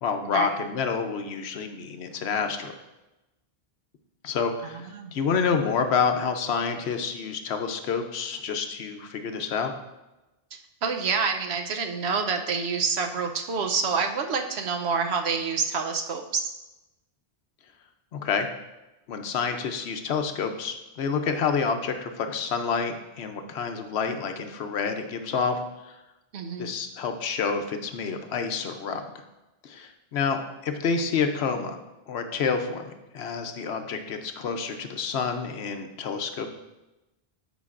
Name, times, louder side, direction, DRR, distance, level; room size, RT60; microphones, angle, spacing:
voice 1, 0.0-2.7 4.2-9.7 18.1-18.5 19.1-25.6 26.6-29.1 29.6-31.8 32.1-36.5, left 5 dB, 75° left, 6 dB, 0.9 m, -28 dB
voice 2, 4.9-5.2 10.8-16.5 26.3-26.8, right 5 dB, 80° right, 5 dB, 1.0 m, -27 dB
12.5 x 5.2 x 2.5 m, 1.0 s
omnidirectional pair, 1.1 m